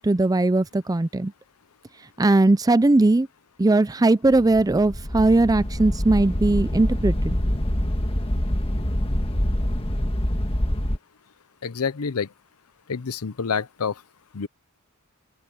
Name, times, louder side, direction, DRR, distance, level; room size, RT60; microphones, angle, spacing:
voice 1, 0.0-1.3 2.2-3.3 3.6-7.4, right 2 dB, 15° right, 0.4 m, -19 dB
sound 1, 4.3-11.0, equal, 25° left, 1.6 m, -25 dB
voice 2, 11.6-12.3 12.9-14.0 14.3-14.5, left 5 dB, 90° left, 0.7 m, -27 dB
open air
head